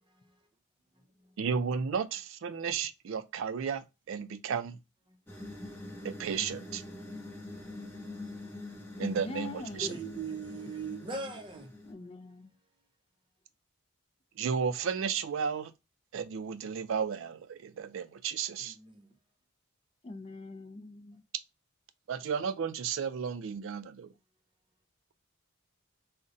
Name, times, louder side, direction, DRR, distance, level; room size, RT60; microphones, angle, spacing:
voice 1, 1.4-4.8 6.0-6.8 9.0-9.9 14.4-15.7 16.1-18.8 22.1-24.1, right 6 dB, 65° right, 0.3 m, -33 dB
sound 1, 5.3-11.9, left 2 dB, 10° left, 0.9 m, -44 dB
voice 2, 9.0-10.1 11.8-12.5 20.0-21.2, left 2 dB, 30° left, 0.4 m, -43 dB
voice 3, 9.8-12.2 18.6-19.1, right 4 dB, 25° right, 0.6 m, -41 dB
3.8 x 2.1 x 2.5 m
head